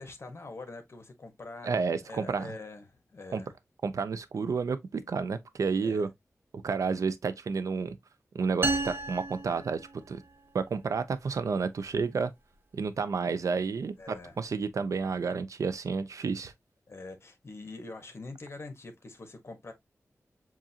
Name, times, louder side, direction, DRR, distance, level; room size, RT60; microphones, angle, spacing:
voice 1, 0.0-1.7 2.1-3.5 5.8-6.1 14.0-14.4 16.9-19.7, left 3 dB, 50° left, 1.4 m, -44 dB
voice 2, 1.6-2.5 3.3-3.4 3.8-6.1 6.6-7.9 8.3-9.8 10.1-10.2 10.5-12.3 12.7-16.5, right 5 dB, 80° right, 0.5 m, -30 dB
sound 1, 8.6-10.4, right 3 dB, 40° right, 1.0 m, -32 dB
7.3 x 2.6 x 2.8 m
wide cardioid pair, 120°, 5 cm